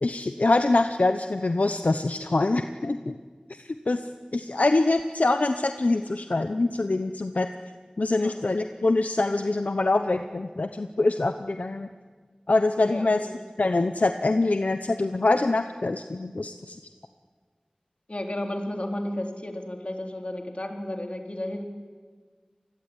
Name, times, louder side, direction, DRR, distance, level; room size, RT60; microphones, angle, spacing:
voice 1, 0.0-3.2 3.6-4.0 4.3-7.5 8.0-11.9 12.5-13.3 13.6-16.8, left 2 dB, 75° left, 8 dB, 0.9 m, -24 dB
voice 2, 12.8-13.3 18.1-21.6, left 1 dB, 50° left, 3 dB, 3.9 m, -33 dB
27.5 x 21.0 x 10.0 m, 1.5 s
wide cardioid pair, 45°, 2 cm